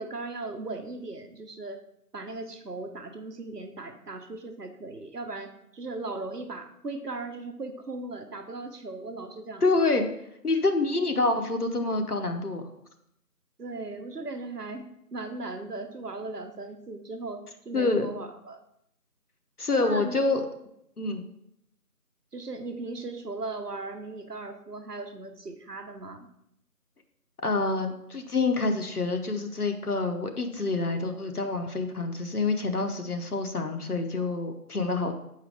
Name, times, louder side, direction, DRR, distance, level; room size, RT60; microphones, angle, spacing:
voice 1, 0.0-1.8 2.1-9.6 13.6-18.6 19.8-20.2 22.3-26.3, right 3 dB, 75° right, 6 dB, 0.9 m, -38 dB
voice 2, 9.6-10.0 10.4-12.7 17.7-18.1 19.6-20.4 21.0-21.2 27.4-35.1, left 3 dB, 65° left, 5 dB, 0.9 m, -27 dB
6.9 x 4.7 x 3.4 m, 0.77 s
figure-of-eight pair, 180°, 48 cm